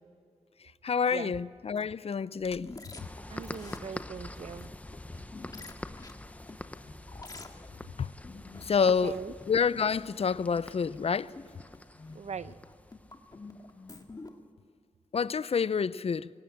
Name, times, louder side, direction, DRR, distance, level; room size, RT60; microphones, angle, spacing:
voice 1, 0.8-2.7 8.0-8.1 8.6-9.2 9.5-11.3 15.1-16.3, left 6 dB, 55° left, 0.5 m, -28 dB
sound 1, 1.7-14.3, left 3 dB, 30° left, 1.8 m, -48 dB
sound 2, 3.0-14.1, left 1 dB, 10° left, 0.8 m, -46 dB
voice 2, 3.3-4.7 8.8-9.3 12.1-12.6, right 6 dB, 65° right, 0.7 m, -40 dB
23.5 x 18.5 x 8.7 m
wide cardioid pair, 115°, 12 cm